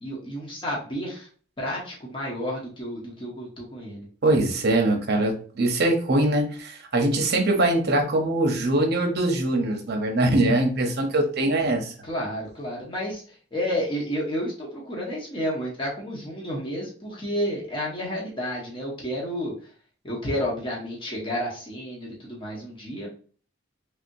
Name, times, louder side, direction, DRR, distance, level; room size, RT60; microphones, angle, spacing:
voice 1, 0.0-1.3 1.6-4.1 12.0-19.5 20.0-23.1, equal, 25° left, -4 dB, 0.9 m, -31 dB
voice 2, 4.2-11.9, right 1 dB, 55° right, 3 dB, 0.8 m, -22 dB
3.4 x 2.8 x 2.6 m, 0.42 s
head